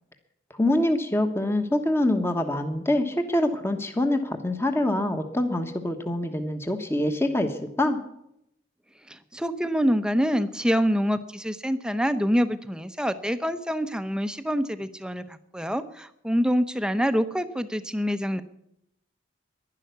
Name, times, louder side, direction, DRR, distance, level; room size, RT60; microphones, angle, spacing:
voice 1, 0.6-8.0, left 1 dB, 15° left, 6 dB, 1.2 m, -25 dB
voice 2, 9.1-18.4, equal, 5° right, 11 dB, 0.8 m, -26 dB
11.5 x 11.5 x 9.3 m, 0.78 s
head